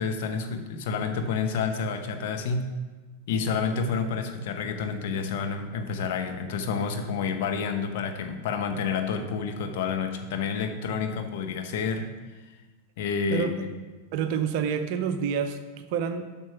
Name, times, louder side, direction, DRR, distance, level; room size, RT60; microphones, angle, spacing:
voice 1, 0.0-2.7 3.3-12.1 12.4-12.5 13.0-13.7, left 5 dB, 50° left, 6 dB, 0.9 m, -29 dB
voice 2, 13.3-13.6 14.1-16.3, right 7 dB, 45° right, 8 dB, 0.6 m, -28 dB
7.5 x 6.1 x 5.8 m, 1.3 s
figure-of-eight pair, 90°, 0 cm